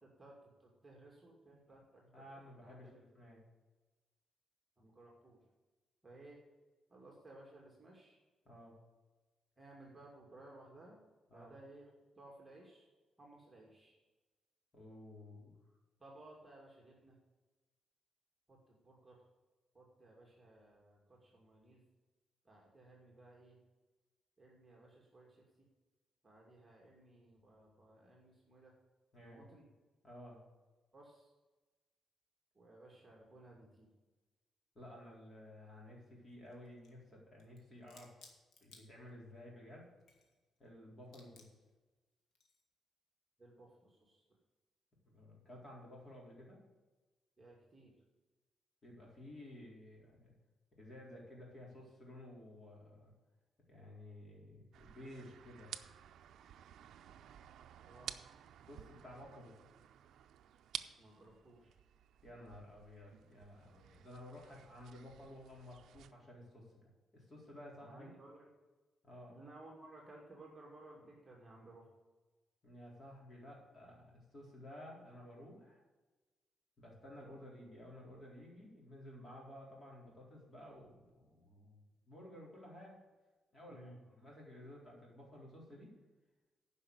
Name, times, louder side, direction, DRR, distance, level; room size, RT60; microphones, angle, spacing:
voice 1, 0.0-2.0 2.6-3.0 4.8-5.4 6.0-6.4 6.9-8.2 9.6-11.0 11.3-11.9 12.2-12.9 13.2-14.0 16.0-17.2 18.5-18.6 18.8-19.2 19.7-21.8 22.4-23.6 24.4-25.4 26.2-28.7 29.2-29.7 30.9-31.3 32.5-33.9 43.4-44.2 47.4-48.0 57.9-58.1 61.0-61.7 67.8-68.5 69.3-71.9 83.7-84.0, right 2 dB, 15° right, -3 dB, 2.4 m, -58 dB
voice 2, 1.5-1.8 2.1-3.4 8.5-8.8 11.3-11.6 14.7-15.5 29.1-29.5 30.0-30.4 34.7-38.3 38.6-39.9 40.6-41.4 45.1-46.6 48.8-50.3 50.8-53.1 53.7-55.7 58.7-59.5 62.2-68.1 69.0-69.4 72.6-75.8 76.8-81.8 82.1-82.9 83.5-85.9, left 1 dB, 25° left, -3 dB, 4.1 m, -54 dB
sound 1, 36.2-37.0 37.4-39.4 39.8-40.7 41.0-41.7 42.3-42.7, left 4 dB, 75° left, 2.0 m, -63 dB
sound 2, 54.7-66.1, right 10 dB, 75° right, 0.5 m, -53 dB
9.9 x 5.7 x 8.0 m, 1.2 s
cardioid pair, 145°, 0 cm